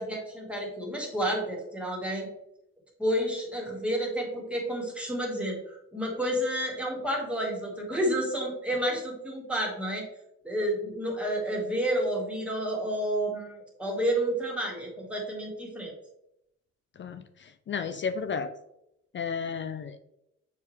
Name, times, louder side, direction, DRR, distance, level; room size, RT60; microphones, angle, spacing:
voice 1, 0.0-2.3 3.0-10.0 10.4-15.9, equal, 5° right, -2 dB, 2.1 m, -30 dB
voice 2, 17.0-18.5 19.1-20.0, left 6 dB, 40° left, 9 dB, 0.5 m, -33 dB
7.2 x 4.8 x 3.3 m, 0.81 s
cardioid pair, 115°, 30 cm